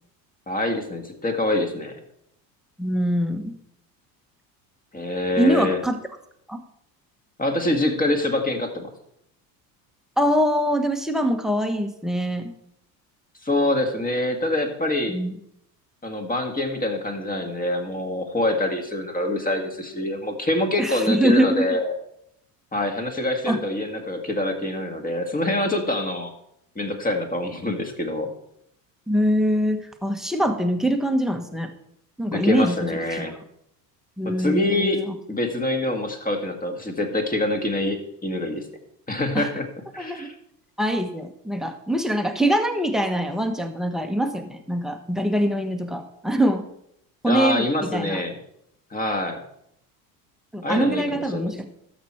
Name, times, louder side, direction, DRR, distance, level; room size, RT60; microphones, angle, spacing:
voice 1, 0.5-1.9 4.9-5.8 7.4-8.9 13.4-15.2 16.0-22.0 22.7-26.3 26.8-28.3 32.3-33.3 34.2-35.0 35.3-38.7 39.1-39.7 39.9-40.3 47.3-48.4 48.9-49.4 50.6-51.6, left 1 dB, 15° left, 5 dB, 1.8 m, -25 dB
voice 2, 2.8-3.5 5.4-6.0 6.5-6.6 10.2-12.5 15.1-15.4 20.8-21.8 23.5-23.6 29.1-31.7 32.2-33.3 34.2-35.2 39.3-39.5 40.0-40.3 40.8-46.6 47.2-48.2 50.5-51.6, equal, ahead, 5 dB, 1.2 m, -23 dB
13.0 x 6.1 x 4.4 m, 0.75 s
hypercardioid pair, 85°, 49 cm